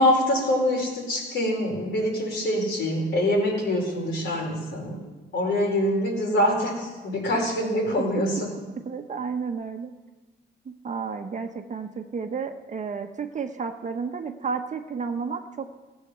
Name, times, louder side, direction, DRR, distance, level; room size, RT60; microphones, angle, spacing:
voice 1, 0.0-5.0 5.3-8.5, left 1 dB, 60° left, -1 dB, 4.6 m, -24 dB
voice 2, 8.8-9.9 10.6-15.7, right 5 dB, 40° right, 6 dB, 1.0 m, -32 dB
16.0 x 8.3 x 6.8 m, 1.2 s
cardioid pair, 90°, 20 cm